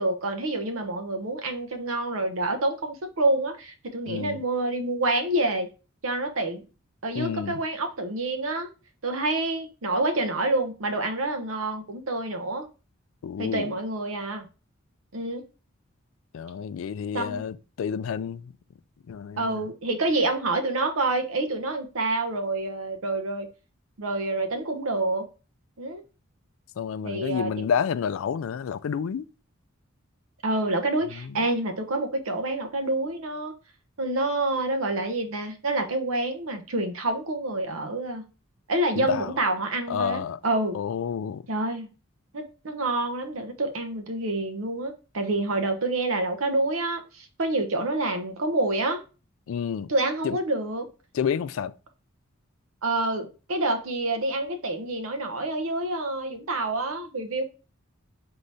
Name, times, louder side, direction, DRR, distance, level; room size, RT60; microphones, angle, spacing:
voice 1, 0.0-5.7 6.0-6.6 7.0-8.7 9.0-12.7 13.4-14.5 15.1-15.4 17.1-17.4 19.4-23.5 24.0-25.3 25.8-26.0 27.0-27.5 30.4-33.5 34.0-38.2 38.7-40.8 41.5-41.9 42.3-49.0 49.9-50.9 52.8-57.4, right 2 dB, 75° right, 0.9 m, -27 dB
voice 2, 4.1-4.4 7.1-7.6 13.2-13.8 16.3-18.5 19.1-19.6 26.8-29.3 39.0-39.3 39.9-40.4 40.7-41.4 49.5-49.9 50.2-50.4 51.1-51.7, left 7 dB, 70° left, 0.3 m, -29 dB
4.1 x 3.8 x 3.3 m
head